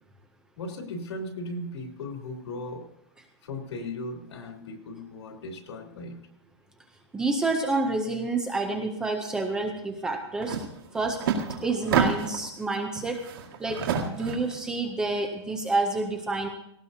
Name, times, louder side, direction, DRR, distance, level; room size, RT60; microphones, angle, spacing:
voice 1, 0.6-2.9 3.4-6.2 12.0-12.2, left 2 dB, 75° left, 2 dB, 3.2 m, -37 dB
voice 2, 7.1-10.6 10.9-11.2 11.6-13.2 13.6-16.5, right 3 dB, 5° right, 4 dB, 0.6 m, -28 dB
sound 1, 10.4-10.6 11.0-12.5 12.9-14.5, right 7 dB, 50° right, 2.0 m, -28 dB
18.0 x 17.5 x 2.8 m, 0.76 s
supercardioid pair, 180°, 14 cm